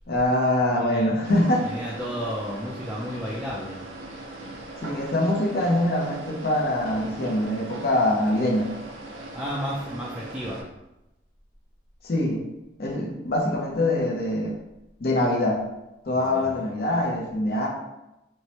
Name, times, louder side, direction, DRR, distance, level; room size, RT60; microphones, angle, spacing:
voice 1, 0.1-1.7 4.8-8.7 12.0-12.4 12.8-14.6 15.0-15.6 16.0-17.7, left 1 dB, 50° left, -1 dB, 0.5 m, -24 dB
voice 2, 0.8-1.2 1.6-3.8 9.3-10.6 16.2-16.6, equal, 5° right, -6 dB, 0.3 m, -32 dB
sound 1, 1.2-10.6, right 2 dB, 85° right, 0.5 m, -39 dB
4.5 x 2.1 x 2.7 m, 0.93 s
head